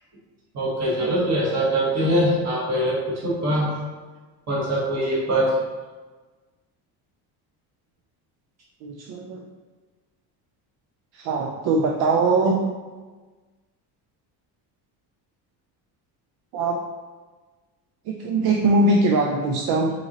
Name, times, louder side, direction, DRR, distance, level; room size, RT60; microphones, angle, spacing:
voice 1, 0.5-3.7 4.5-5.5, right 1 dB, 40° right, -6 dB, 1.3 m, -23 dB
voice 2, 8.8-9.4 11.1-12.6 16.5-16.8 18.1-19.9, right 2 dB, 60° right, 0 dB, 0.6 m, -21 dB
5.2 x 3.0 x 2.9 m, 1.3 s
cardioid pair, 155°, 42 cm